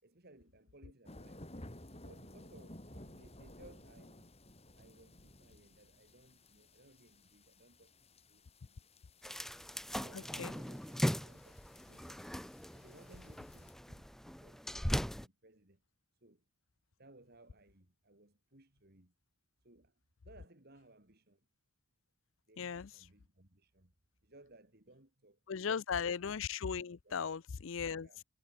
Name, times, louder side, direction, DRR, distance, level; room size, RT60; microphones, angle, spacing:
voice 1, 0.0-1.6 2.0-4.3 4.7-8.0 8.3-8.8 9.2-9.4 9.9-12.3 12.7-15.8 16.2-16.4 17.0-19.1 19.6-19.9 20.2-21.4 22.5-23.9 24.2-25.4 25.7-26.1 27.0-27.3 28.0-28.2, right 2 dB, 50° right, 3.3 m, -62 dB
sound 1, 1.1-13.7, left 1 dB, 30° left, 5.3 m, -56 dB
sound 2, 9.2-15.3, equal, ahead, 0.9 m, -39 dB
voice 2, 10.1-10.5 22.6-22.9 25.5-28.1, left 6 dB, 70° left, 0.5 m, -37 dB
head